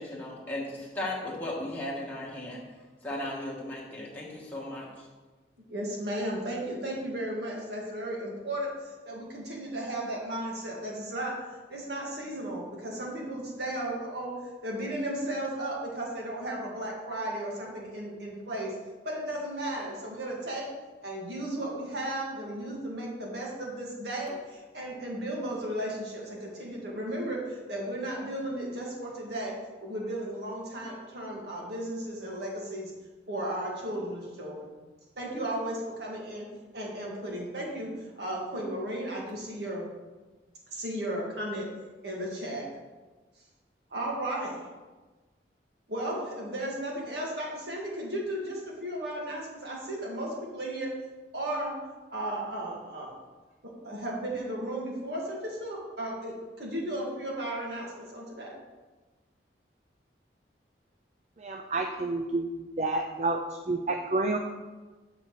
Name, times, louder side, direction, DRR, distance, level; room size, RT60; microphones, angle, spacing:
voice 1, 0.0-2.6 3.0-5.1, left 1 dB, 10° left, -6 dB, 1.5 m, -36 dB
voice 2, 5.7-8.7 9.1-11.3 11.7-18.7 19.0-20.7 21.0-29.5 29.8-32.9 33.3-34.7 35.2-36.5 36.7-37.9 38.2-39.9 40.7-41.7 42.0-42.7 43.9-44.6 45.9-50.9 51.3-51.7 52.1-53.1 53.8-56.3 56.6-58.6, right 1 dB, 65° right, -3 dB, 2.0 m, -35 dB
voice 3, 61.4-63.4 63.7-64.4, right 2 dB, 40° right, 3 dB, 0.4 m, -29 dB
8.1 x 6.8 x 3.2 m, 1.3 s
head